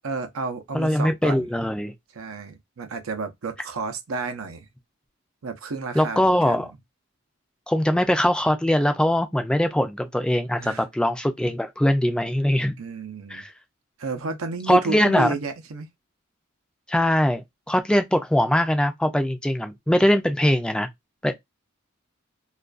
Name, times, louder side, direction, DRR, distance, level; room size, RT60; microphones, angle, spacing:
voice 1, 0.0-1.5 2.1-4.7 5.4-6.7 10.6-10.8 12.8-13.5 14.0-15.9, right 4 dB, 90° right, 0.6 m, -31 dB
voice 2, 0.7-1.9 6.0-6.7 7.7-12.8 13.3-13.5 14.7-15.3 16.9-20.9 21.2-21.4, left 1 dB, 5° left, 0.3 m, -22 dB
2.4 x 2.2 x 2.3 m
head